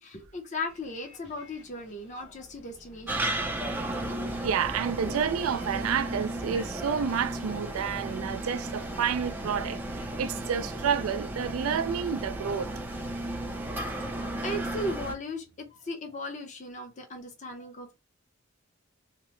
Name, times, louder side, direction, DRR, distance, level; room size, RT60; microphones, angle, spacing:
voice 1, 0.0-3.4 5.0-5.2 13.9-14.0 14.4-18.0, left 1 dB, 35° left, 0.6 m, -37 dB
Bus, 0.7-12.6, equal, 50° left, 0.9 m, -52 dB
sound 1, 3.1-15.1, right 1 dB, 10° right, 0.4 m, -34 dB
voice 2, 4.4-12.7, right 7 dB, 80° right, 0.3 m, -30 dB
2.8 x 2.0 x 3.1 m
head